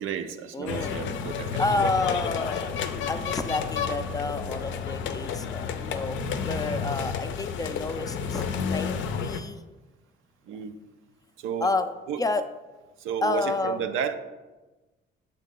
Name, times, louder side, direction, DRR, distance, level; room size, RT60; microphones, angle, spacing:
voice 1, 0.0-1.9 10.5-10.8 11.4-11.8 12.1-12.2 13.0-14.1, right 8 dB, 85° right, 9 dB, 0.5 m, -32 dB
voice 2, 0.5-0.9 1.6-2.7 3.1-9.6 11.6-11.9 12.2-12.4 13.2-13.8, left 3 dB, 20° left, 9 dB, 0.4 m, -29 dB
sound 1, 0.7-9.4, left 6 dB, 75° left, 0.5 m, -31 dB
6.4 x 3.9 x 3.7 m, 1.2 s
cardioid pair, 90°, 20 cm